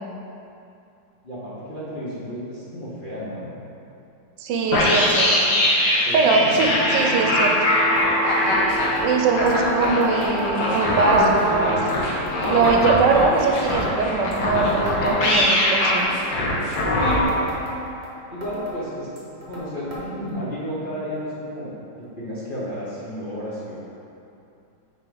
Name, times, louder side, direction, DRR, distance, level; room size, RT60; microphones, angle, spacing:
voice 1, 1.2-3.5 6.0-7.4 17.0-17.5 18.3-19.1 19.5-21.8 22.1-23.8, equal, 35° left, -8 dB, 1.1 m, -32 dB
voice 2, 4.4-5.4 6.1-7.5 9.0-11.9 12.5-16.1, right 4 dB, 75° right, 1 dB, 1.3 m, -21 dB
sound 1, 4.7-17.2, left 1 dB, 70° left, 1.6 m, -22 dB
sound 2, 6.6-11.9, right 3 dB, 55° right, 1.6 m, -30 dB
sound 3, 8.0-8.1 8.3-8.4 8.7-9.1 9.5-10.8 11.1-11.5 11.9-13.3 13.6-13.9 14.3-15.7 16.0-16.4 16.7-18.1 18.4-18.8 19.2-19.6 19.9-20.0 20.3-20.4 21.2-21.3 22.0-22.1, equal, 40° right, 1.3 m, -36 dB
7.6 x 5.0 x 3.9 m, 2.7 s
omnidirectional pair, 2.0 m